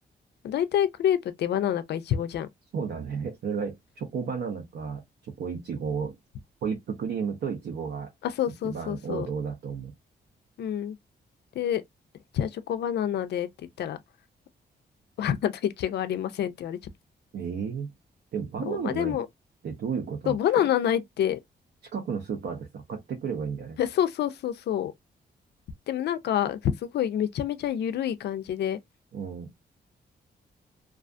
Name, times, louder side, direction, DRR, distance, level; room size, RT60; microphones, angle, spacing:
voice 1, 0.4-2.5 8.2-9.3 10.6-11.0 11.6-11.8 12.3-13.5 13.8-14.0 15.2-16.8 18.7-19.3 20.3-21.4 23.8-24.9 25.9-28.8, left 10 dB, 75° left, 0.4 m, -27 dB
voice 2, 2.7-5.0 5.4-6.2 6.6-8.1 8.6-9.9 17.3-17.9 18.3-19.2 19.6-20.6 21.9-23.8 29.1-29.5, right 6 dB, 80° right, 0.7 m, -32 dB
2.4 x 2.3 x 2.4 m
wide cardioid pair, 170°, 18 cm